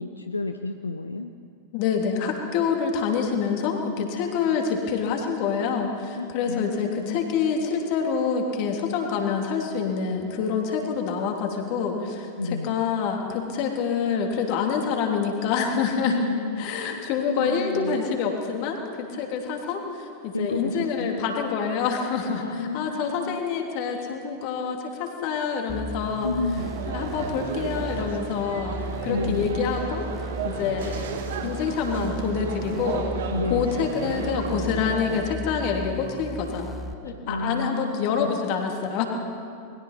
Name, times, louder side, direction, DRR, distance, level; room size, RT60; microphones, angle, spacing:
voice 1, 0.0-1.3 6.2-7.0 12.4-12.8 16.0-17.1 17.4-18.0 20.3-21.2 22.3-23.4 26.2-26.7 29.1-29.7 33.3-33.9 37.3-38.3, left 3 dB, 80° left, 8 dB, 0.6 m, -31 dB
voice 2, 1.7-16.2 16.6-26.3 26.9-28.8 29.0-33.1 33.5-36.7 37.0-39.0, left 6 dB, 45° left, 2 dB, 3.1 m, -27 dB
sound 1, 25.7-36.9, equal, 5° left, 1.3 m, -36 dB
sound 2, 26.6-35.4, right 6 dB, 60° right, 1.8 m, -34 dB
28.5 x 21.5 x 4.2 m, 2.4 s
figure-of-eight pair, 90°, 0 cm